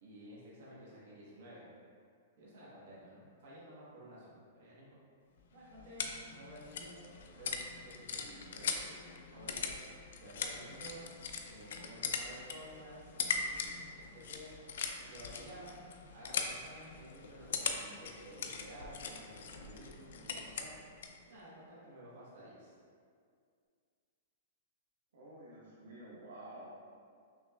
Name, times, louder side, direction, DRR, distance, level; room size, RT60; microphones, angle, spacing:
voice 1, 0.0-1.6 2.4-4.9 5.5-9.8 10.2-11.1 11.4-14.5 15.0-15.8 16.1-20.7 21.3-22.7, right 1 dB, 55° right, -7 dB, 1.1 m, -53 dB
sound 1, 5.4-21.2, left 5 dB, 65° left, 0.4 m, -41 dB
voice 2, 25.1-26.7, right 1 dB, 80° right, -6 dB, 1.1 m, -50 dB
5.9 x 3.0 x 2.3 m, 2.2 s
supercardioid pair, 180°, 0 cm